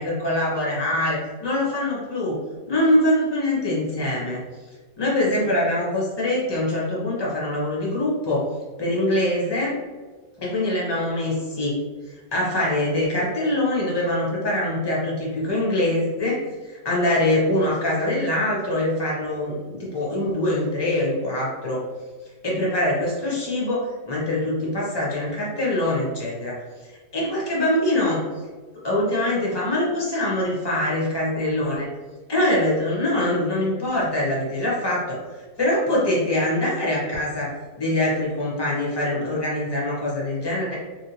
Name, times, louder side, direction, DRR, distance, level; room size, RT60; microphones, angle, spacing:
voice 1, 0.0-2.4 2.7-4.4 5.0-8.5 8.8-9.8 10.4-11.8 12.3-21.8 22.4-26.6 27.1-28.2 28.8-31.9 32.3-35.2 35.6-37.5 37.8-40.8, left 1 dB, 20° left, -5 dB, 0.6 m, -23 dB
3.1 x 2.7 x 2.8 m, 1.4 s
omnidirectional pair, 1.8 m